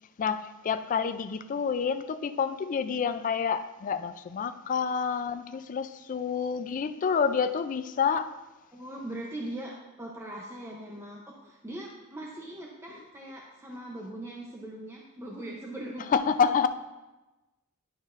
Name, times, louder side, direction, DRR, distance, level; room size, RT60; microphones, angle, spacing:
voice 1, 0.2-8.4 16.1-16.7, left 6 dB, 35° left, 11 dB, 0.3 m, -28 dB
voice 2, 8.7-16.2, right 1 dB, 10° right, -2 dB, 0.6 m, -40 dB
10.0 x 6.4 x 2.5 m, 1.1 s
head